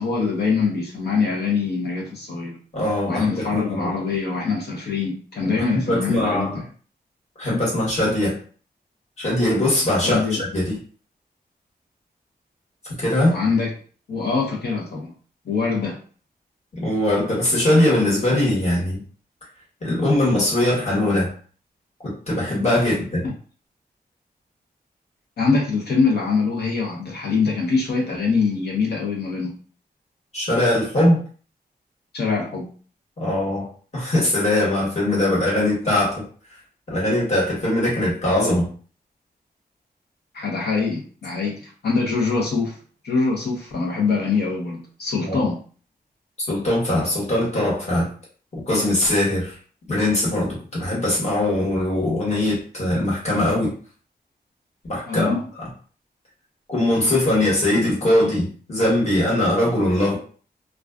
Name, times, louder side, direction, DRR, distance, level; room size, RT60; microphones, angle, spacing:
voice 1, 0.0-2.6 3.1-6.5 10.0-10.4 13.3-13.7 14.1-15.1 15.4-16.0 23.2-23.3 25.4-29.6 32.1-32.7 40.3-42.8 43.0-45.6 55.1-55.4, left 4 dB, 85° left, 0 dB, 0.7 m, -23 dB
voice 2, 2.7-3.9 5.4-6.6 7.4-8.4 9.2-10.8 12.9-13.4 16.8-19.0 19.8-21.3 22.0-23.3 30.3-31.2 33.2-36.2 36.9-38.7 45.2-45.5 46.4-48.1 48.5-49.5 49.9-53.8 54.9-55.7 56.7-60.2, left 1 dB, 40° left, -6 dB, 1.3 m, -21 dB
2.3 x 2.3 x 2.3 m, 0.42 s
wide cardioid pair, 155°, 17 cm